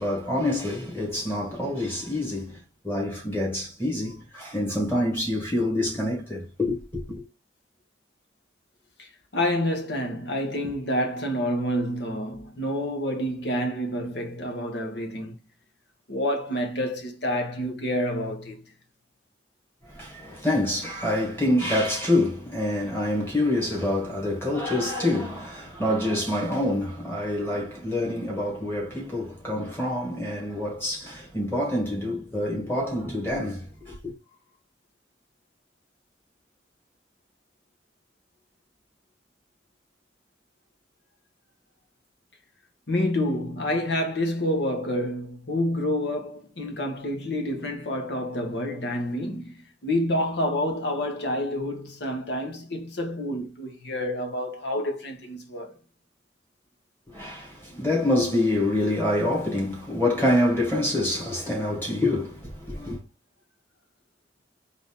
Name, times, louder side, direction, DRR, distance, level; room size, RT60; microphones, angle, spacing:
voice 1, 0.0-2.6 2.8-7.0 19.8-34.0 57.1-63.0, left 1 dB, 10° left, 1.9 m, -26 dB
voice 2, 9.0-15.3 16.1-18.6 42.9-55.7, left 1 dB, 65° left, 1.1 m, -28 dB
4.0 x 2.7 x 3.6 m
head